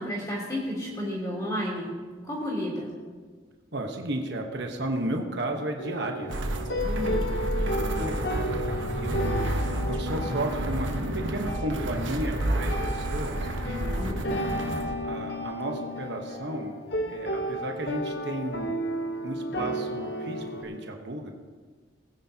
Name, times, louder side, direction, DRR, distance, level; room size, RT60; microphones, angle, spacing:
voice 1, 0.0-1.9 2.2-2.9 6.8-7.1 13.9-14.2, equal, 20° left, -6 dB, 3.2 m, -32 dB
voice 2, 3.7-6.3 7.0-7.2 7.5-8.6 9.0-14.2 15.0-16.8 17.1-18.7 19.2-21.3, right 1 dB, 65° right, 3 dB, 1.2 m, -34 dB
sound 1, 5.8-20.6, equal, 60° left, 1.0 m, -33 dB
sound 2, 6.3-15.0, right 1 dB, 85° right, 1.2 m, -30 dB
20.5 x 9.5 x 2.9 m, 1.5 s
head